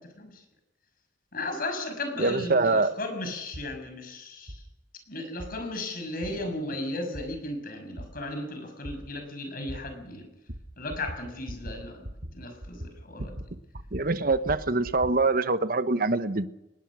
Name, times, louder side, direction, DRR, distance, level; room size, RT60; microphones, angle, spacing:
voice 1, 1.3-4.6 5.1-10.3 10.8-12.1 12.3-13.4, left 2 dB, 55° left, 6 dB, 6.2 m, -35 dB
voice 2, 2.2-2.9 13.9-16.5, right 3 dB, 55° right, 12 dB, 1.1 m, -24 dB
sound 1, 3.5-3.7 4.5-4.6 5.4-5.5 6.2-6.3 7.1-7.3 8.0-8.1 8.8-9.0 9.7-9.8 10.5-10.6 10.9-11.2 11.5-11.8 12.0-12.3 12.6-13.5 13.7-15.1, equal, 75° right, 4.4 m, -39 dB
23.5 x 20.5 x 6.2 m, 0.89 s
head